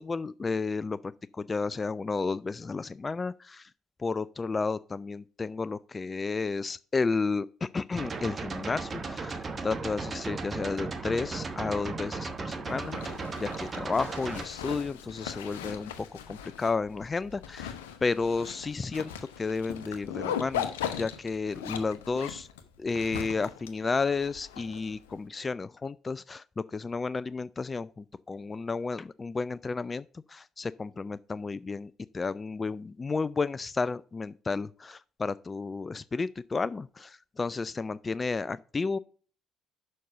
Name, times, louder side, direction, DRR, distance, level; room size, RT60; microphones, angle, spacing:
voice 1, 0.0-3.7 4.0-19.1 19.4-20.7 20.9-22.5 22.8-39.0, left 4 dB, 30° left, 0.3 m, -32 dB
sound 1, 8.0-14.4, right 4 dB, 35° right, 1.1 m, -36 dB
Zipper (clothing), 12.7-25.2, left 9 dB, 85° left, 0.8 m, -39 dB
6.5 x 5.4 x 6.5 m
hypercardioid pair, 60°, 0 cm